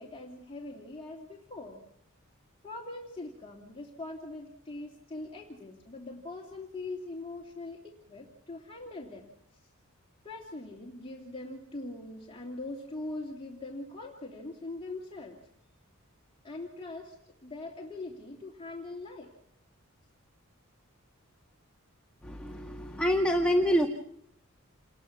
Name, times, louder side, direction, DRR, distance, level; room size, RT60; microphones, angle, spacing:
voice 1, 0.0-1.8 2.6-9.6 10.2-15.4 16.4-19.3, left 2 dB, 25° left, -2 dB, 2.8 m, -42 dB
voice 2, 22.2-23.9, equal, 5° left, 1 dB, 1.7 m, -26 dB
29.0 x 20.5 x 6.0 m, 0.72 s
head